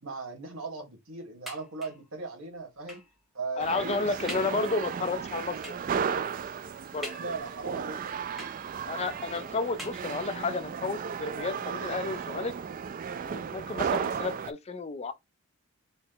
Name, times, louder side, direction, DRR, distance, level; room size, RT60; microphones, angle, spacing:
voice 1, 0.0-3.0 3.3-4.6 7.2-8.1 8.4-8.5, right 3 dB, 75° right, 1.4 m, -38 dB
sound 1, 1.5-2.1 2.9-3.2 3.7-3.8 4.3-4.7 5.6-6.0 7.0-7.7 8.4-9.0 9.8-10.5 11.3-11.4 11.7-11.8, left 1 dB, ahead, 0.9 m, -44 dB
voice 2, 3.6-5.7 6.9-7.1 8.9-12.5 13.2-15.1, left 3 dB, 30° left, 0.4 m, -32 dB
sound 2, 3.6-14.5, right 6 dB, 40° right, 0.3 m, -34 dB
4.1 x 2.0 x 3.8 m
head